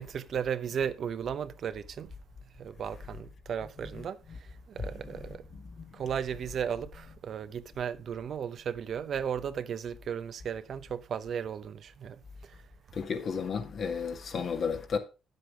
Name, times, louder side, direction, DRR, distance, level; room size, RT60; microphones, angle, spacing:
voice 1, 0.0-2.1 2.5-5.5 5.9-12.6, right 8 dB, 60° right, 0.8 m, -35 dB
voice 2, 4.8-5.2 5.8-5.9 12.9-15.0, left 6 dB, 55° left, 2.1 m, -33 dB
9.6 x 7.8 x 5.0 m
cardioid pair, 90°, 0 cm